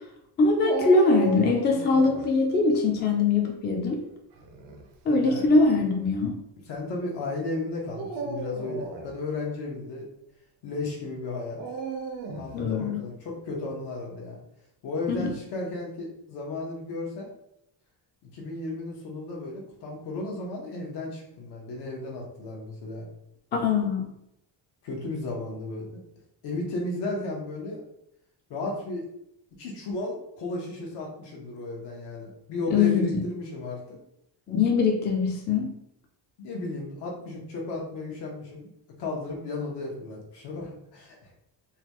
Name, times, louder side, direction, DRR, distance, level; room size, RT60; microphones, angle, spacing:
voice 1, 0.4-4.0 5.1-6.4 12.5-13.0 15.1-15.3 23.5-24.1 32.7-33.2 34.5-35.7, left 3 dB, 25° left, 2 dB, 0.4 m, -22 dB
Dog, 0.6-2.3 4.3-4.8 5.6-5.7 7.9-9.1 11.6-12.6, right 2 dB, 85° right, 0.8 m, -34 dB
voice 2, 5.2-5.5 6.7-10.0 10.6-11.6 12.4-14.4 14.8-17.3 18.3-23.1 24.8-26.0 26.4-27.8 28.5-29.1 29.6-34.0 36.4-38.7 39.0-41.3, left 2 dB, 80° left, -2 dB, 1.2 m, -34 dB
3.9 x 2.3 x 2.9 m, 0.76 s
cardioid pair, 175°, 41 cm